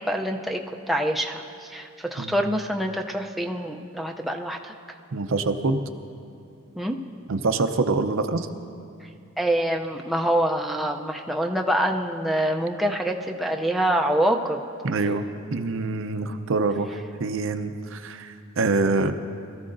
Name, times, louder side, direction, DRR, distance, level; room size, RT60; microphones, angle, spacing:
voice 1, 0.1-0.6 0.9-4.7 6.8-7.0 9.4-14.6, right 1 dB, ahead, 1 dB, 0.5 m, -25 dB
voice 2, 5.1-5.8 7.3-8.5 14.8-15.2 15.5-19.1, right 3 dB, 65° right, 8 dB, 0.6 m, -25 dB
22.0 x 14.0 x 2.6 m, 2.5 s
head